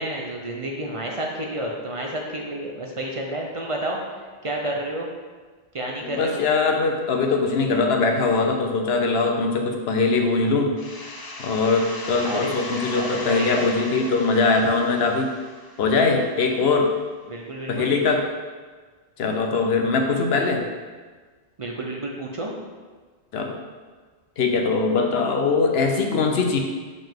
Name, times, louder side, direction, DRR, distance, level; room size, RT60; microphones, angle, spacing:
voice 1, 0.0-4.0 4.4-5.1 5.7-6.4 12.2-12.5 12.9-13.7 17.3-17.9 21.6-22.5, right 1 dB, 35° right, 0 dB, 0.7 m, -30 dB
voice 2, 6.0-10.8 11.4-15.4 15.8-16.9 17.7-18.2 19.2-20.6 23.3-23.6 24.4-26.6, left 4 dB, 70° left, 3 dB, 1.0 m, -21 dB
sound 1, 10.8-16.3, left 2 dB, 30° left, 0.4 m, -36 dB
5.6 x 5.3 x 3.6 m, 1.4 s
omnidirectional pair, 1.1 m